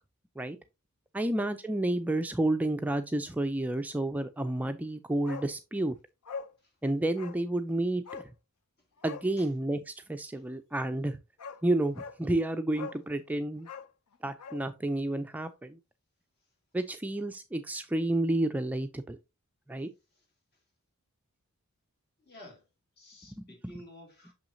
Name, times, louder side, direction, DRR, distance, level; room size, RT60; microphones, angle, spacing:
voice 1, 1.1-5.9 6.8-8.2 9.0-11.2 11.6-13.7 14.2-15.8 16.7-19.2 19.7-19.9 23.4-23.7, right 1 dB, 5° right, 0.3 m, -30 dB
Bark, 5.2-5.5 5.8-5.9 6.2-6.5 7.1-7.4 8.0-8.3 9.0-9.3 10.9-11.0 11.4-11.6 11.9-12.2 12.7-13.0 13.6-14.6 14.9-15.0, left 5 dB, 80° left, 0.6 m, -42 dB
voice 2, 22.2-22.7 23.0-24.3, left 1 dB, 45° left, 2.4 m, -52 dB
6.2 x 5.8 x 2.6 m
head